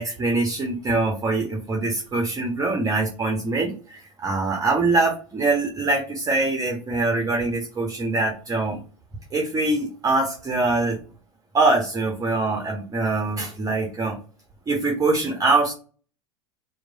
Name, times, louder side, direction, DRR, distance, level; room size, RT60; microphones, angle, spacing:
voice 1, 0.0-8.8 9.3-11.0 11.5-14.2 14.7-15.7, right 3 dB, 20° right, 1 dB, 0.6 m, -23 dB
3.0 x 2.1 x 2.5 m, 0.37 s
hypercardioid pair, 90°, 18 cm